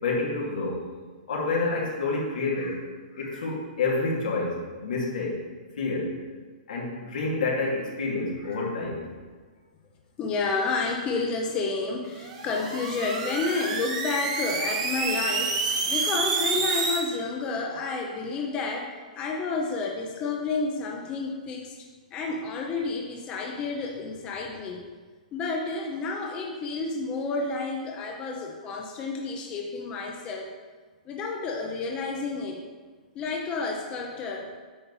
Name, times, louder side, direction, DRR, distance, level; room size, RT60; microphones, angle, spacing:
voice 1, 0.0-0.8 1.3-2.8 3.2-5.4 5.8-6.1 6.7-9.1, left 3 dB, 80° left, -3 dB, 2.4 m, -28 dB
voice 2, 10.2-18.9 19.2-21.7 22.1-24.8 25.3-30.5 31.1-32.6 33.1-34.5, left 4 dB, 20° left, 0 dB, 0.7 m, -30 dB
sound 1, 12.2-17.0, right 4 dB, 50° right, 1.4 m, -28 dB
8.7 x 5.3 x 4.1 m, 1.4 s
hypercardioid pair, 150°, 4 cm